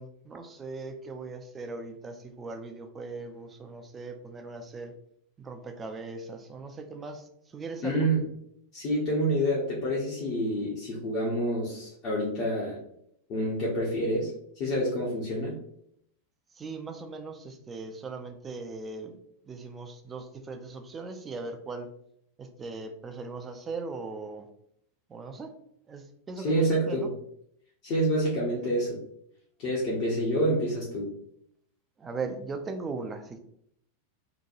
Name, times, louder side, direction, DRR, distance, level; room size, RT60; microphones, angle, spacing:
voice 1, 0.0-4.9 5.4-8.1 16.6-19.2 19.5-21.9 22.4-24.5 25.1-25.5 25.9-27.1 32.0-33.4, right 3 dB, 20° right, 6 dB, 0.4 m, -39 dB
voice 2, 7.8-8.2 8.7-12.8 13.3-15.6 26.4-27.1 27.8-29.0 29.6-31.1, right 1 dB, 40° left, -5 dB, 0.7 m, -28 dB
2.9 x 2.2 x 2.5 m, 0.71 s
figure-of-eight pair, 90°, 0 cm